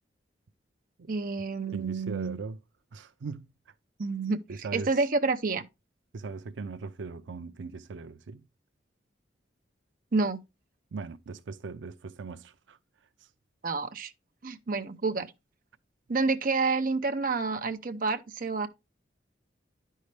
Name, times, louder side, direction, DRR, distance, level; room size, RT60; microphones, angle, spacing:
voice 1, 1.1-2.4 4.0-5.6 10.1-10.4 13.6-14.1 14.4-15.3 16.1-18.7, right 3 dB, 50° right, 0.7 m, -29 dB
voice 2, 1.7-2.6 2.9-3.7 4.5-5.0 6.1-8.4 10.9-12.8 13.2-13.3, right 4 dB, 85° right, 0.5 m, -39 dB
10.5 x 5.5 x 3.2 m
head